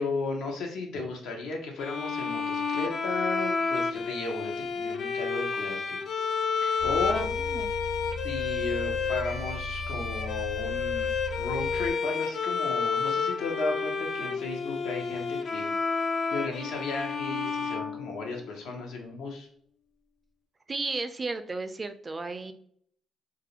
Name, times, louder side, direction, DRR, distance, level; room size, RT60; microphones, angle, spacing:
voice 1, 0.0-6.0 6.8-7.2 8.2-15.7 16.3-19.5, left 3 dB, 85° left, 1 dB, 0.7 m, -34 dB
sound 1, 1.8-18.6, left 5 dB, 60° left, 0.3 m, -30 dB
sound 2, 6.8-11.9, left 3 dB, 75° right, 0.6 m, -38 dB
voice 2, 7.1-7.7 20.7-22.5, right 3 dB, 30° right, 9 dB, 0.3 m, -34 dB
2.4 x 2.0 x 2.8 m, 0.62 s
cardioid pair, 90°, 0 cm